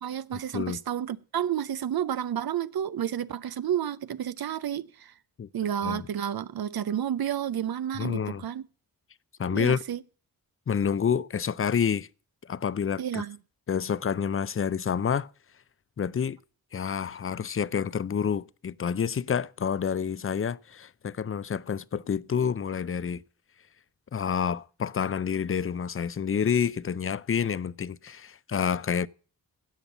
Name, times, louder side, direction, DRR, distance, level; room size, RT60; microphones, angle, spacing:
voice 1, 0.0-5.1 5.5-8.6 9.5-10.0 13.0-13.4, right 10 dB, 75° right, 0.6 m, -31 dB
voice 2, 8.0-8.4 9.4-9.8 10.7-12.1 12.4-13.2 13.7-15.3 16.0-16.4 16.7-23.2 24.1-29.1, left 7 dB, 35° left, 0.5 m, -28 dB
16.0 x 5.5 x 8.2 m
cardioid pair, 65°, 36 cm